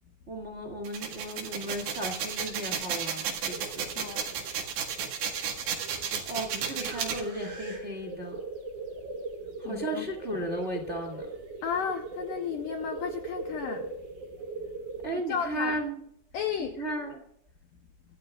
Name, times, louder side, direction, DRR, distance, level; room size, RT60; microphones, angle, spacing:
voice 1, 0.3-3.9 6.3-8.4 9.6-11.2 15.0-16.0 16.6-17.2, right 1 dB, 25° right, 1.4 m, -35 dB
sound 1, 0.8-7.2, right 7 dB, 90° right, 4.1 m, -33 dB
sound 2, 3.5-15.1, right 3 dB, 70° right, 6.1 m, -40 dB
voice 2, 4.0-4.3 9.6-10.1 11.6-13.9 15.1-15.8 16.3-16.8, left 7 dB, 80° left, 2.0 m, -33 dB
24.5 x 14.0 x 2.4 m
omnidirectional pair, 4.9 m